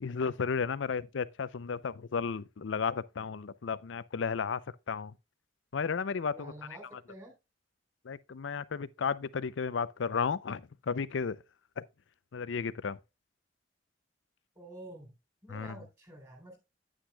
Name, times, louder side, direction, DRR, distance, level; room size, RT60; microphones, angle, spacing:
voice 1, 0.0-4.6 4.9-5.1 5.7-6.5 8.1-11.4 11.8-11.9 12.3-13.0 15.5-15.8, left 5 dB, 85° left, 0.5 m, -33 dB
voice 2, 6.3-7.3 14.6-15.1 15.4-16.6, right 1 dB, 20° right, 3.5 m, -49 dB
9.8 x 8.8 x 2.2 m
head